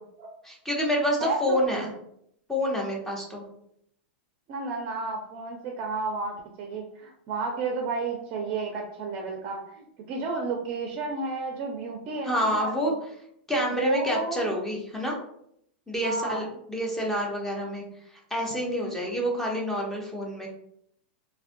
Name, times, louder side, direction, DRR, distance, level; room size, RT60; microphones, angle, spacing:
voice 1, 0.4-1.9 2.5-3.4 12.3-12.9 13.5-15.2 15.9-17.8 18.3-20.5, equal, 5° left, -2 dB, 0.6 m, -28 dB
voice 2, 1.2-1.9 4.5-13.0 13.7-14.5 16.0-16.4, right 3 dB, 40° right, 1 dB, 0.4 m, -32 dB
2.4 x 2.1 x 2.5 m, 0.73 s
hypercardioid pair, 115°, 6 cm